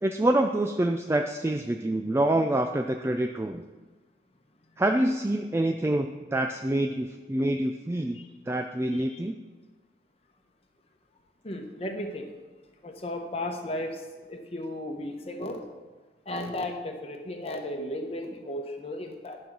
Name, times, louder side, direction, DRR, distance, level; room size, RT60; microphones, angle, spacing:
voice 1, 0.0-3.6 4.8-8.2 8.5-9.4, right 1 dB, 15° right, 5 dB, 0.3 m, -26 dB
voice 2, 11.4-12.3 12.8-15.6 16.3-19.4, left 1 dB, 35° left, 3 dB, 1.0 m, -35 dB
10.0 x 5.4 x 6.0 m, 1.3 s
head